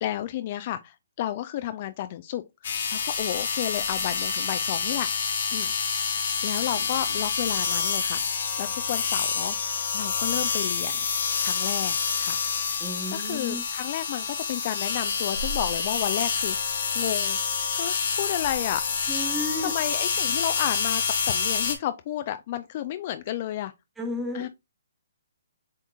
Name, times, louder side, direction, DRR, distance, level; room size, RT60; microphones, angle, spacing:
voice 1, 0.0-5.1 5.5-5.7 6.4-8.2 8.6-9.6 9.9-11.0 11.4-12.4 13.1-17.4 17.7-23.7 24.3-24.5, left 12 dB, 40° left, 0.3 m, -32 dB
sound 1, 2.6-21.7, left 6 dB, 60° left, 1.0 m, -27 dB
voice 2, 12.8-13.6 19.1-19.7 24.0-24.5, left 1 dB, 5° right, 1.1 m, -32 dB
7.1 x 2.9 x 2.3 m
hypercardioid pair, 150°, 0 cm